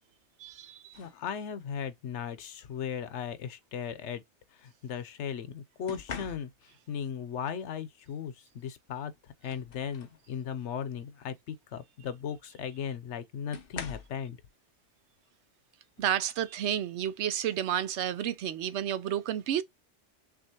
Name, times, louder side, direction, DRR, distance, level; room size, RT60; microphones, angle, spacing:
voice 1, 0.4-1.0 16.0-19.6, right 10 dB, 75° right, 0.9 m, -31 dB
sound 1, 0.9-1.3 2.5-2.8 5.9-6.9 8.6-8.7 9.1-10.3 10.7-11.0 12.4-12.5 13.5-14.3 16.0-16.1 16.6-16.9, left 6 dB, 60° left, 0.9 m, -44 dB
voice 2, 1.0-4.2 4.6-9.1 9.4-14.4, left 7 dB, 90° left, 1.0 m, -37 dB
5.9 x 2.5 x 2.8 m
omnidirectional pair, 1.2 m